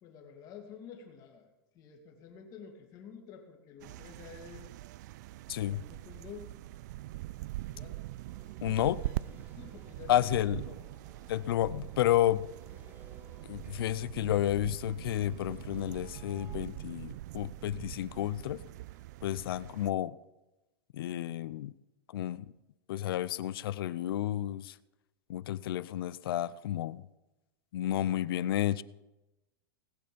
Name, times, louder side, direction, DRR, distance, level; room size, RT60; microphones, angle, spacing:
voice 1, 0.0-1.5 1.7-4.8 5.9-6.6 7.7-8.0 8.8-9.2 9.5-10.8, left 6 dB, 30° left, 2.2 m, -50 dB
sound 1, 3.8-19.9, right 16 dB, 50° right, 0.3 m, -43 dB
voice 2, 5.5-5.8 8.6-9.0 10.1-10.6 11.3-12.4 13.5-18.6 19.2-20.2 20.9-21.7 22.1-22.4 22.9-24.7 25.3-27.1 27.7-28.8, left 13 dB, 70° left, 0.5 m, -31 dB
sound 2, 8.2-16.6, right 2 dB, 15° right, 2.0 m, -59 dB
19.0 x 7.8 x 5.2 m
supercardioid pair, 165°, 12 cm